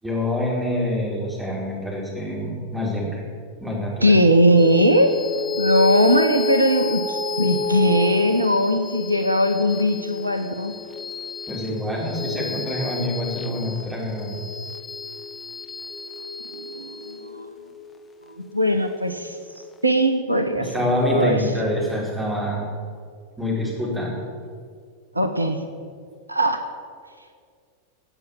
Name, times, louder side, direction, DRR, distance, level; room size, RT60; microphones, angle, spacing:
voice 1, 0.0-3.2 3.6-4.2 11.5-14.4 20.5-22.6 23.4-24.2, left 1 dB, 10° right, -4 dB, 5.0 m, -26 dB
voice 2, 4.0-5.2 5.6-10.7 16.5-17.5 18.3-19.4 19.8-20.8 21.1-21.4 25.1-25.6 26.3-26.6, equal, 85° right, 8 dB, 0.9 m, -20 dB
sound 1, 4.6-19.3, left 4 dB, 20° left, 1.2 m, -31 dB
17.5 x 8.5 x 7.4 m, 2.1 s
figure-of-eight pair, 90°, 0 cm